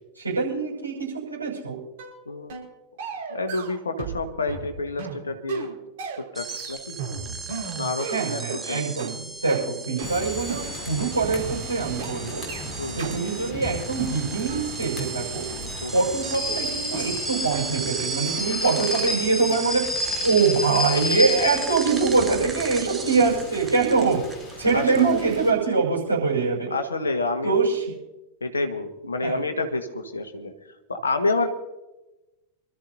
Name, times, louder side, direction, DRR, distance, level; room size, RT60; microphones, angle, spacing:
voice 1, 0.2-1.8 8.0-12.5 12.9-15.5 15.9-19.9 20.2-24.2 24.6-26.7 27.4-27.8 29.2-29.4, right 4 dB, 80° right, -4 dB, 6.1 m, -24 dB
sound 1, 2.0-2.2 2.5-2.7 3.0-4.2 4.5-8.6 9.0-9.1 9.5-9.6 10.0-10.1 10.5-10.6 11.0-11.1 11.5-11.6 12.0-12.1 12.5-12.6 13.0-13.1 13.5-13.6 14.0-15.2 15.5-15.6 16.0-16.1 16.5-16.7 17.0-17.1 17.5-17.6, right 6 dB, 55° right, 4.9 m, -35 dB
voice 2, 3.3-5.7 6.3-7.0 7.8-8.4 8.7-8.9 12.8-13.1 15.8-16.1 24.7-25.2 26.7-27.6 28.4-30.5 30.9-31.5, left 3 dB, 75° left, 7 dB, 1.4 m, -28 dB
sound 2, 6.3-25.5, right 5 dB, 15° right, 1.1 m, -36 dB
Rain / Train, 10.0-25.5, left 2 dB, 15° left, 5.5 m, -33 dB
26.5 x 13.5 x 2.7 m, 1.0 s
figure-of-eight pair, 90°, 0 cm